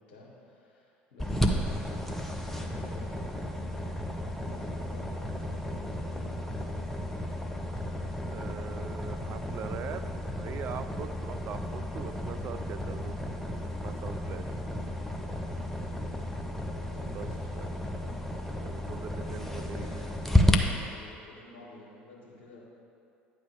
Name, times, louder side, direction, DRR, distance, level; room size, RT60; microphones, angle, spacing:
voice 1, 0.1-2.1 2.6-4.0 4.4-6.3 16.9-17.7 19.1-22.6, left 2 dB, 70° left, -4 dB, 1.6 m, -50 dB
sound 1, 1.2-20.6, left 1 dB, 5° left, 0.7 m, -32 dB
voice 2, 8.3-10.0 10.3-14.6 17.1-17.3 17.5-17.7 18.6-20.2, right 8 dB, 40° right, 10 dB, 0.3 m, -42 dB
9.5 x 3.5 x 6.9 m, 2.7 s
figure-of-eight pair, 65°, 6 cm